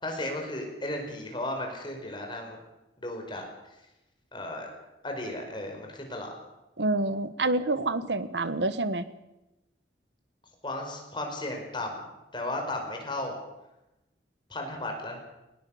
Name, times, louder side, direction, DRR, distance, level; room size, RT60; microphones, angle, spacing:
voice 1, 0.0-2.6 3.0-3.4 4.3-4.7 5.0-6.3 10.6-12.0 12.3-13.4 14.5-15.2, left 1 dB, 25° left, 2 dB, 4.9 m, -34 dB
voice 2, 6.8-9.0, right 2 dB, 80° right, 13 dB, 1.3 m, -27 dB
20.0 x 19.0 x 7.2 m, 0.97 s
head